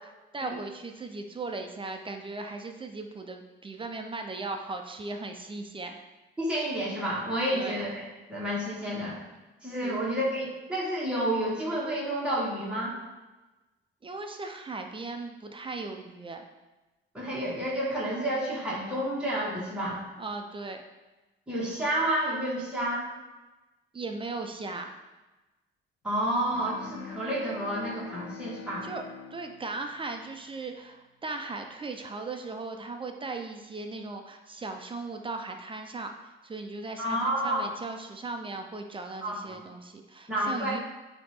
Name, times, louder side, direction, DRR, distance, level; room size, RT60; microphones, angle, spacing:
voice 1, 0.3-6.0 7.5-7.8 9.8-10.0 14.0-16.4 20.2-20.8 23.9-24.9 28.8-29.0 29.3-40.8, right 3 dB, 25° right, 4 dB, 0.7 m, -37 dB
voice 2, 6.4-8.0 8.3-9.2 9.6-13.0 17.1-20.0 21.5-23.1 26.0-28.9 37.0-37.7 39.2-39.6 40.3-40.8, right 1 dB, 5° right, -7 dB, 2.0 m, -30 dB
Bowed string instrument, 26.5-30.8, left 6 dB, 80° left, 0.5 m, -45 dB
8.9 x 3.0 x 3.7 m, 1.1 s
cardioid pair, 90°, 20 cm